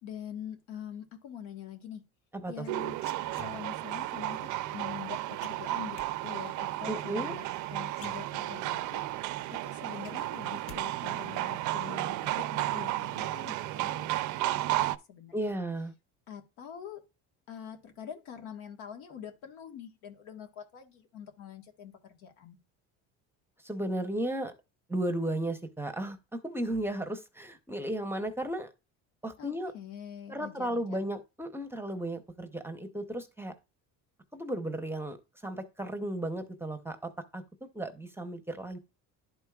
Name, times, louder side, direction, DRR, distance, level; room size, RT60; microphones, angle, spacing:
voice 1, 0.0-2.1 2.5-3.0 3.3-9.0 9.5-15.6 16.3-17.0 17.5-22.6 29.4-31.0, left 9 dB, 90° left, 1.5 m, -45 dB
voice 2, 2.3-2.6 6.9-7.4 15.3-15.9 23.6-24.5 24.9-28.7 29.2-29.7 30.3-33.5 34.3-35.2 35.4-37.4 37.7-38.8, right 1 dB, 5° right, 0.6 m, -34 dB
sound 1, 2.6-3.9 5.4-6.1 7.5-7.6 7.9-8.7 9.1-9.2 9.6-10.8 11.1-11.5, left 7 dB, 40° left, 0.7 m, -51 dB
sound 2, 2.7-15.0, right 16 dB, 60° right, 0.5 m, -33 dB
11.5 x 4.5 x 2.3 m
cardioid pair, 125°, 34 cm